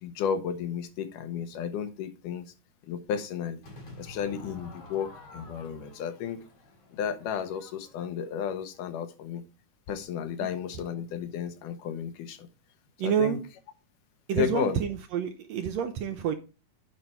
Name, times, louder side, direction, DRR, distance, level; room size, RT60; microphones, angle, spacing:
voice 1, 0.0-2.5 2.9-3.6 4.0-6.4 6.9-9.4 9.9-12.5 13.0-13.4 14.4-14.8, left 7 dB, 85° left, 2.6 m, -33 dB
Crowd / Fireworks, 3.6-8.9, left 2 dB, 60° left, 5.5 m, -50 dB
voice 2, 13.0-13.4 14.3-16.3, right 8 dB, 75° right, 1.6 m, -28 dB
9.3 x 5.6 x 4.4 m
omnidirectional pair, 3.6 m